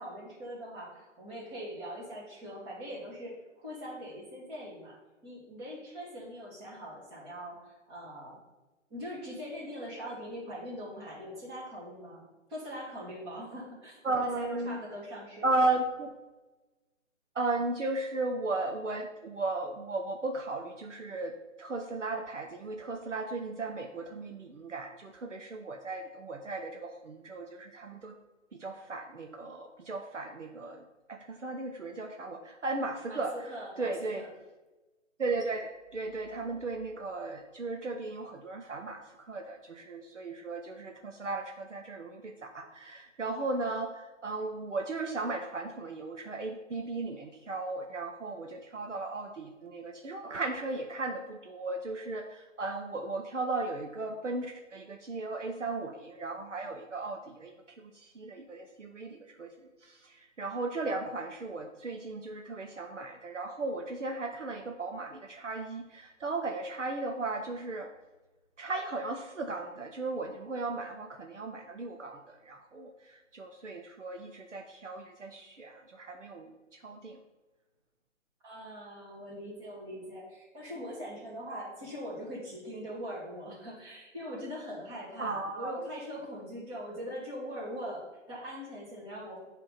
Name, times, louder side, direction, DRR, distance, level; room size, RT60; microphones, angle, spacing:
voice 1, 0.0-8.4 8.9-12.2 12.5-15.6 33.1-34.3 78.4-89.4, equal, 20° right, -6 dB, 2.3 m, -42 dB
voice 2, 14.0-14.8 15.4-16.1 17.3-28.2 28.5-30.8 31.1-33.4 33.8-34.3 35.2-67.9 68.6-77.2 85.2-85.8, right 3 dB, 65° right, 3 dB, 0.9 m, -36 dB
8.7 x 3.5 x 5.8 m, 1.1 s
figure-of-eight pair, 140°, 39 cm